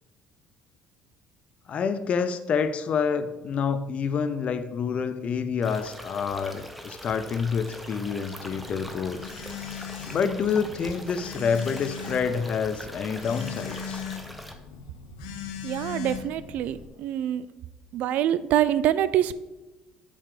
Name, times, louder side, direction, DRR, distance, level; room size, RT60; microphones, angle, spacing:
voice 1, 1.7-9.2 10.1-14.0, left 6 dB, 45° left, 12 dB, 0.6 m, -28 dB
sound 1, 5.6-14.6, equal, ahead, 0.8 m, -42 dB
Telephone, 8.4-16.9, left 7 dB, 90° left, 0.7 m, -39 dB
voice 2, 15.6-17.5 17.9-19.3, right 11 dB, 65° right, 16 dB, 0.3 m, -25 dB
5.4 x 5.1 x 5.0 m, 1.0 s
supercardioid pair, 85°, 3 cm